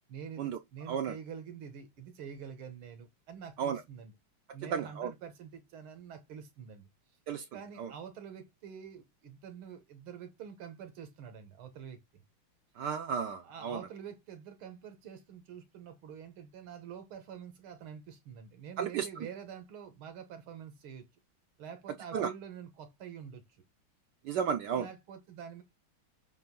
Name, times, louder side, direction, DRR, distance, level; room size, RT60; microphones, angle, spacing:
voice 1, 0.1-4.1 4.5-6.9 7.5-12.2 13.4-21.1 21.6-23.4 24.7-25.6, right 7 dB, 85° right, 2.1 m, -46 dB
voice 2, 4.7-5.1 7.3-7.4 7.8-7.9 12.8-13.8 18.8-19.1 22.1-22.3 24.3-24.8, right 7 dB, 70° right, 1.1 m, -33 dB
7.9 x 2.7 x 5.3 m
omnidirectional pair, 2.2 m